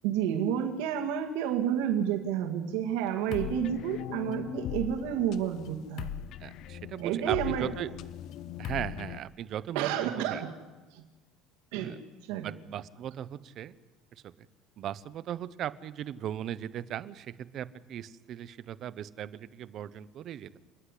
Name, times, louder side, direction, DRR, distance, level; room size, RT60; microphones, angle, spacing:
voice 1, 0.0-6.1 7.0-7.7 9.7-10.5 10.9-11.0 11.7-12.0 12.3-12.5, right 9 dB, 80° right, 3 dB, 2.2 m, -30 dB
sound 1, 3.3-9.2, left 10 dB, 50° left, 0.7 m, -39 dB
voice 2, 6.4-7.9 8.6-10.4 11.8-12.0 12.3-13.7 14.8-20.6, right 10 dB, 40° right, 15 dB, 0.7 m, -38 dB
29.0 x 10.0 x 9.9 m, 1.3 s
cardioid pair, 155°, 0 cm